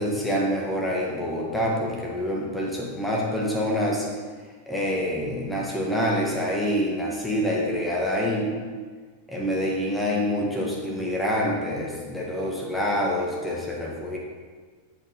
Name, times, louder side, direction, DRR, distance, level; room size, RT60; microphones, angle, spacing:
voice 1, 0.0-4.1 4.7-8.5 9.3-14.2, equal, 5° left, -4 dB, 1.3 m, -26 dB
7.5 x 4.9 x 4.8 m, 1.5 s
figure-of-eight pair, 90°, 0 cm